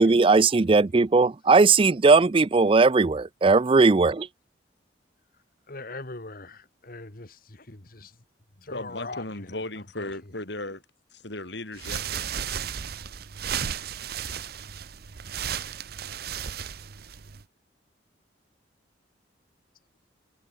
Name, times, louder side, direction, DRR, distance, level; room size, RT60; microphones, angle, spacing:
voice 1, 0.0-4.3, right 4 dB, 30° right, 0.4 m, -18 dB
voice 2, 5.7-8.1 8.6-9.6 10.0-10.1, left 2 dB, 50° left, 2.0 m, -41 dB
voice 3, 8.7-10.8 11.1-12.3, left 2 dB, 70° left, 4.3 m, -36 dB
sound 1, 11.7-17.4, right 8 dB, 55° right, 0.7 m, -34 dB
head